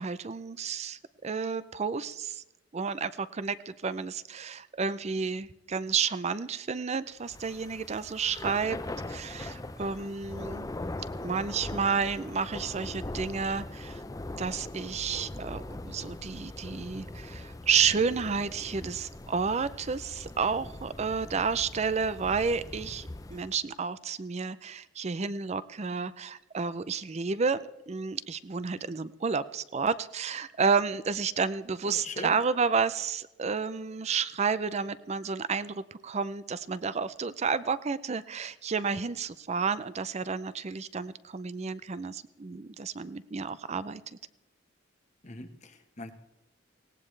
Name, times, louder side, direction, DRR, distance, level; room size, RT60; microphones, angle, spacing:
voice 1, 0.0-2.4 2.7-8.8 9.1-10.7 11.2-14.0 14.4-27.6 27.9-44.0, right 5 dB, 35° right, 16 dB, 0.5 m, -31 dB
Thunder / Rain, 7.2-23.6, left 2 dB, 15° left, 0.5 m, -41 dB
voice 2, 31.8-32.4 45.2-46.1, left 2 dB, 35° left, 8 dB, 1.2 m, -41 dB
18.5 x 18.0 x 3.3 m, 0.97 s
head